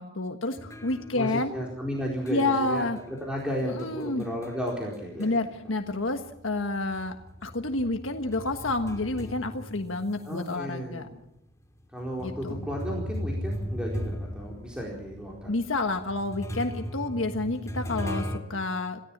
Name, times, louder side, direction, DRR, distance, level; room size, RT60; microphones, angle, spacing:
voice 1, 0.0-1.6 2.3-3.0 3.6-4.2 5.2-7.2 7.4-11.1 12.2-12.6 15.5-19.0, left 2 dB, 75° left, 5 dB, 1.5 m, -29 dB
sound 1, 0.6-5.6 5.9-10.5 11.1-11.2 12.0-18.4, equal, 15° left, 2.7 m, -37 dB
voice 2, 1.1-5.4 10.2-11.1 11.9-15.5, equal, 5° right, -2 dB, 4.4 m, -34 dB
27.5 x 17.0 x 7.3 m, 0.82 s
head